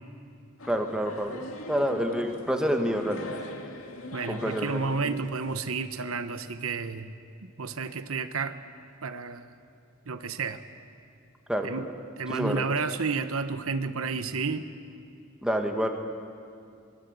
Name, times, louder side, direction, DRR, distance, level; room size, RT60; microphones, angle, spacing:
sound 1, 0.6-5.7, left 2 dB, 80° left, 2.1 m, -42 dB
voice 1, 0.7-3.3 4.3-5.2 11.5-11.9 12.3-12.7 15.4-15.9, equal, 5° right, 3 dB, 1.6 m, -28 dB
voice 2, 4.1-7.1 7.4-8.6 9.0-9.5 10.1-10.6 11.6-11.8 12.2-14.6, right 4 dB, 80° right, 10 dB, 1.0 m, -31 dB
24.0 x 20.5 x 8.1 m, 2.4 s
head